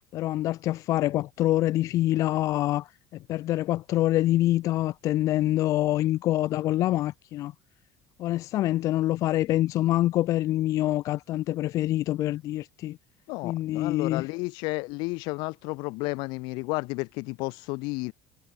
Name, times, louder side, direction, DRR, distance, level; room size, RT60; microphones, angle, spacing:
voice 1, 0.1-2.9 3.3-7.5 8.2-13.0 13.4-14.3, left 15 dB, 45° left, 0.5 m, -25 dB
voice 2, 13.3-18.1, left 26 dB, 70° left, 1.1 m, -32 dB
cardioid pair, 170°, 8 cm